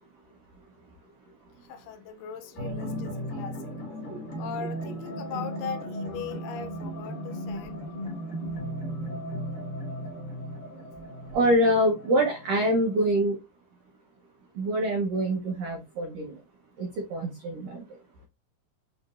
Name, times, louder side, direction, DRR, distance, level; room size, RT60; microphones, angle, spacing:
voice 1, 1.6-3.6 4.4-7.8, left 7 dB, 80° left, 2.1 m, -39 dB
sound 1, 2.5-13.2, equal, 30° left, 1.6 m, -36 dB
voice 2, 11.3-13.4 14.5-16.4 16.8-17.8, right 1 dB, 85° right, 1.4 m, -25 dB
6.4 x 3.0 x 2.4 m
omnidirectional pair, 4.0 m